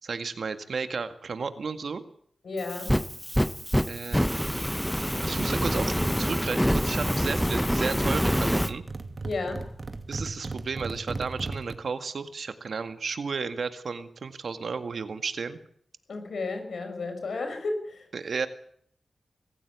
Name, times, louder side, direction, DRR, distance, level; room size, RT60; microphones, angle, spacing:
voice 1, 0.0-2.0 3.9-4.4 5.2-8.8 10.1-15.6 18.1-18.5, right 5 dB, 70° right, 9 dB, 2.0 m, -33 dB
voice 2, 2.4-2.9 9.2-9.6 16.1-18.1, left 3 dB, 80° left, 6 dB, 6.4 m, -32 dB
Fire, 2.6-8.7, equal, ahead, 0.9 m, -26 dB
sound 1, 5.2-11.8, right 3 dB, 40° right, 2.3 m, -38 dB
23.5 x 15.0 x 9.6 m, 0.64 s
wide cardioid pair, 80°, 0 cm